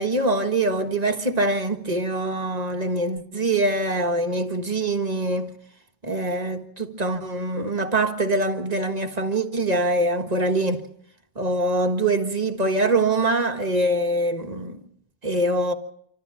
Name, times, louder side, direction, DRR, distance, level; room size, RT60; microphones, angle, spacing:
voice 1, 0.0-5.6 6.0-10.9 11.3-14.8 15.2-15.7, right 2 dB, 35° right, 1.7 m, -24 dB
27.0 x 14.0 x 7.3 m
omnidirectional pair, 1.2 m